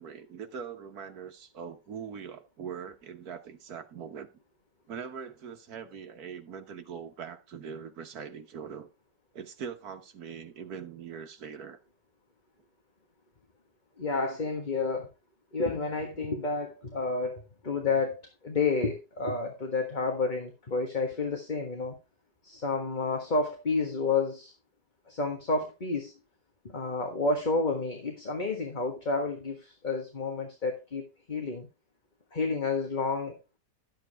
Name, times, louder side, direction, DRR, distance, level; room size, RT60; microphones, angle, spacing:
voice 1, 0.0-4.3 4.9-8.9 9.3-11.8, right 7 dB, 65° right, 1.7 m, -42 dB
voice 2, 14.0-15.1 15.5-22.0 22.4-24.5 25.1-26.1 26.6-31.7 32.3-33.4, left 3 dB, 30° left, 1.5 m, -30 dB
12.0 x 7.6 x 3.4 m
omnidirectional pair, 1.8 m